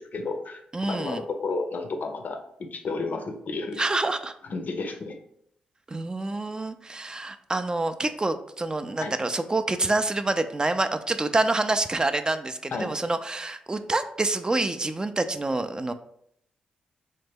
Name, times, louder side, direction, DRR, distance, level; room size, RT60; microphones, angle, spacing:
voice 1, 0.0-3.9 4.5-5.2 9.0-9.1 12.7-12.9, left 3 dB, 60° left, 5 dB, 0.5 m, -32 dB
voice 2, 0.7-1.2 3.8-4.3 5.9-15.9, right 2 dB, 25° right, 10 dB, 0.3 m, -27 dB
3.1 x 2.1 x 3.4 m, 0.71 s
supercardioid pair, 50°, 3 cm